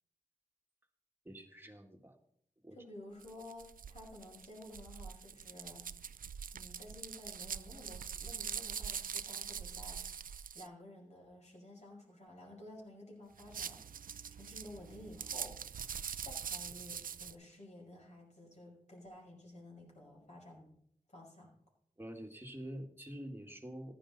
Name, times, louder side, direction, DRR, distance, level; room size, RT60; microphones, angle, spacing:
voice 1, 1.3-2.2 2.6-2.8 22.0-24.0, equal, 15° right, 3 dB, 1.8 m, -47 dB
voice 2, 2.7-5.9 6.5-20.7 21.1-21.5, left 1 dB, 55° left, -2 dB, 5.7 m, -53 dB
sound 1, 3.2-10.7 13.3-17.3, right 7 dB, 85° right, 0.4 m, -44 dB
15.0 x 11.0 x 4.1 m, 0.68 s
wide cardioid pair, 60°, 14 cm